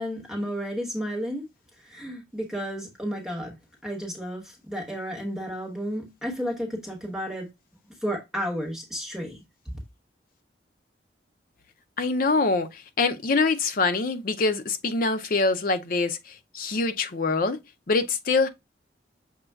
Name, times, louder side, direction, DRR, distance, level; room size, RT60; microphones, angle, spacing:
voice 1, 0.0-1.4 1.8-7.5 8.0-9.4, equal, 5° right, 1.2 m, -32 dB
voice 2, 12.0-17.6 17.9-18.5, left 3 dB, 50° left, 0.6 m, -24 dB
6.5 x 2.3 x 3.4 m
head